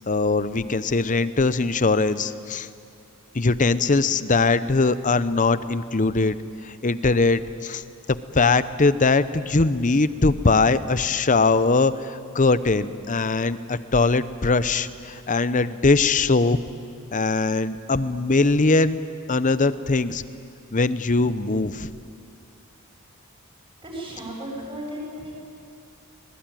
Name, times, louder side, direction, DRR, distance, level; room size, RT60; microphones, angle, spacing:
voice 1, 0.1-2.7 3.3-6.4 6.6-7.8 8.3-16.6 17.1-19.0 19.3-20.2 20.7-21.9, left 3 dB, 35° left, 14 dB, 0.7 m, -21 dB
voice 2, 23.8-25.3, equal, 25° right, -2 dB, 7.6 m, -35 dB
26.0 x 20.5 x 9.1 m, 2.4 s
head